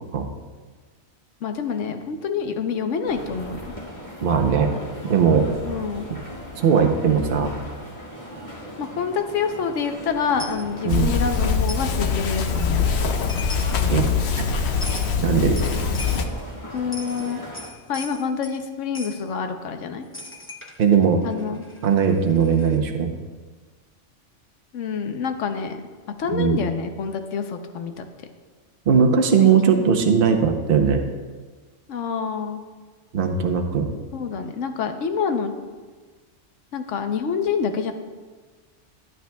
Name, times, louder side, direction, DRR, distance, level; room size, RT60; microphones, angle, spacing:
voice 1, 1.4-3.7 5.6-6.1 8.8-13.2 16.7-17.4 17.9-20.0 21.2-21.7 24.7-25.8 26.2-28.1 29.4-29.5 31.9-32.6 34.1-35.5 36.7-37.9, left 6 dB, 90° left, 7 dB, 1.1 m, -27 dB
sound 1, 3.0-17.7, equal, 30° left, 1.5 m, -38 dB
voice 2, 4.2-4.7 5.1-5.5 6.6-7.5 10.8-11.1 13.9-14.1 14.4-14.5 15.2-15.5 20.8-21.2 21.8-23.1 26.3-26.6 28.9-31.0 33.1-33.9, right 6 dB, 50° right, 4 dB, 0.9 m, -19 dB
Coin (dropping), 10.4-10.6 11.7-11.9 13.0-13.1 13.3-13.8 14.8-15.1 15.6-16.3 16.8-18.6 18.9-19.2 20.1-22.8, left 1 dB, 10° left, 0.8 m, -39 dB
sound 2, 10.9-16.2, left 5 dB, 65° left, 0.9 m, -23 dB
13.0 x 9.1 x 2.3 m, 1.4 s
omnidirectional pair, 1.2 m